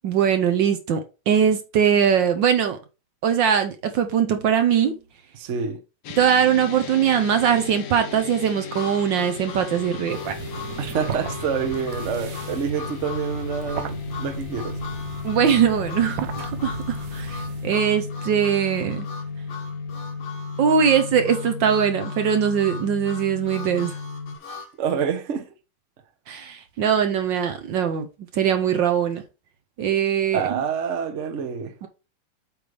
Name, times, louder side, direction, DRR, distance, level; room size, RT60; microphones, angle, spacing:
voice 1, 0.0-1.0 1.3-2.8 3.2-5.0 6.2-10.3 15.2-19.1 20.6-24.0 26.3-28.1 28.3-29.2 29.8-30.4 31.8-31.9, right 8 dB, 65° right, 1.4 m, -21 dB
voice 2, 5.3-5.8 10.8-14.8 24.8-25.5 30.3-31.7, right 7 dB, 45° right, 1.0 m, -27 dB
sound 1, 6.0-24.4, left 5 dB, 65° left, 1.5 m, -34 dB
Harmonica, 8.7-24.7, left 4 dB, 80° left, 2.4 m, -40 dB
sound 2, 10.1-17.8, right 9 dB, 80° right, 0.7 m, -37 dB
8.2 x 3.3 x 5.1 m
omnidirectional pair, 2.3 m